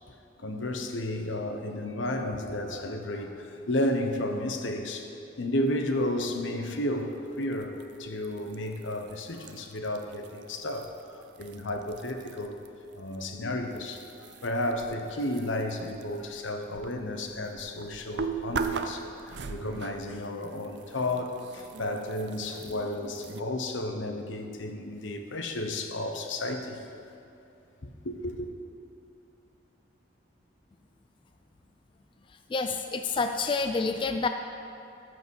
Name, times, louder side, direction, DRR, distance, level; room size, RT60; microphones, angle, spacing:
voice 1, 0.4-5.1 5.4-12.6 12.9-26.8 27.8-28.5, left 1 dB, 85° left, 5 dB, 1.0 m, -32 dB
sound 1, 7.4-12.7 12.9-23.4, right 5 dB, 65° right, 0.5 m, -40 dB
voice 2, 32.3-34.3, left 4 dB, 25° left, 7 dB, 0.3 m, -28 dB
13.5 x 4.9 x 6.4 m, 2.8 s
head